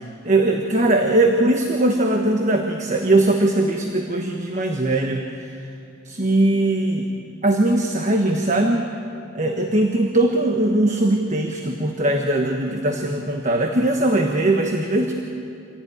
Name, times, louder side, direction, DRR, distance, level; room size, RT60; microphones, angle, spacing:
voice 1, 0.2-5.6 6.0-7.1 7.4-8.9 9.3-15.1, right 2 dB, 35° right, 3 dB, 1.3 m, -20 dB
26.0 x 16.0 x 9.5 m, 2.6 s
head